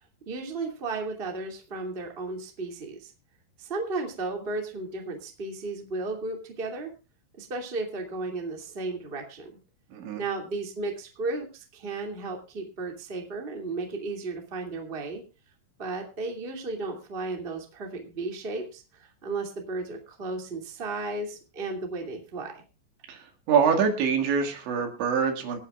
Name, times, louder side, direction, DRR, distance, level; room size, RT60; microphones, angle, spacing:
voice 1, 0.2-3.1 3.6-6.9 7.4-9.5 10.1-15.2 15.8-22.5, right 3 dB, 20° right, 2 dB, 1.6 m, -34 dB
voice 2, 9.9-10.2 23.1-25.6, right 6 dB, 75° right, 4 dB, 4.3 m, -25 dB
26.5 x 9.1 x 2.5 m, 0.30 s
omnidirectional pair, 5.4 m